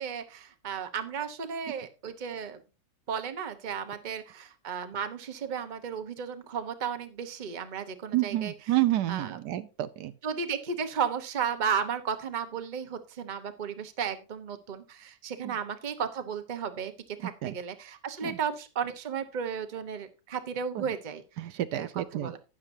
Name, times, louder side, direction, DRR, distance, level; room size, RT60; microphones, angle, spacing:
voice 1, 0.0-2.6 3.1-8.8 9.1-9.4 10.2-16.9 17.2-21.2 21.7-22.4, right 7 dB, 35° right, 8 dB, 1.0 m, -34 dB
voice 2, 8.1-10.1 15.4-15.5 17.4-17.6 18.2-18.4 20.7-20.9 21.4-22.3, right 15 dB, 80° right, 13 dB, 1.2 m, -29 dB
12.5 x 9.7 x 2.6 m, 0.31 s
omnidirectional pair, 1.7 m